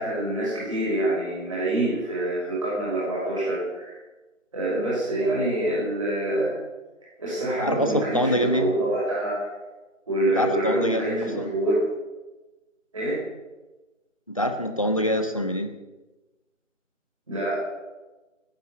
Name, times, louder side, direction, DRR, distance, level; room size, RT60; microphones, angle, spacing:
voice 1, 0.0-4.0 4.5-6.6 7.2-9.4 10.1-11.8 12.9-13.2 17.3-17.6, right 1 dB, 25° right, -7 dB, 5.7 m, -26 dB
voice 2, 7.6-8.7 10.3-11.5 14.3-15.7, equal, 25° left, 6 dB, 1.1 m, -25 dB
17.5 x 8.1 x 9.1 m, 1.1 s
figure-of-eight pair, 170°, 39 cm